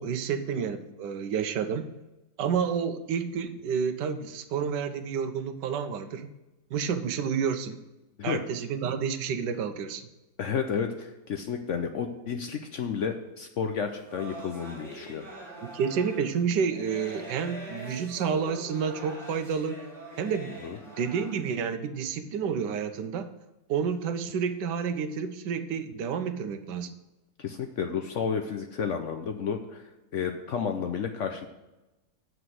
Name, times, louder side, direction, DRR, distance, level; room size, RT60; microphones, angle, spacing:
voice 1, 0.0-1.9 2.4-6.3 6.7-7.8 8.2-10.1 15.6-19.8 20.2-23.3 23.7-26.9, right 6 dB, 85° right, 9 dB, 1.4 m, -30 dB
voice 2, 10.4-15.3 20.6-20.8 27.4-31.5, left 6 dB, 65° left, 5 dB, 0.8 m, -31 dB
sound 1, 13.9-21.4, right 1 dB, ahead, 3.0 m, -43 dB
8.0 x 4.9 x 7.4 m, 1.0 s
omnidirectional pair, 1.8 m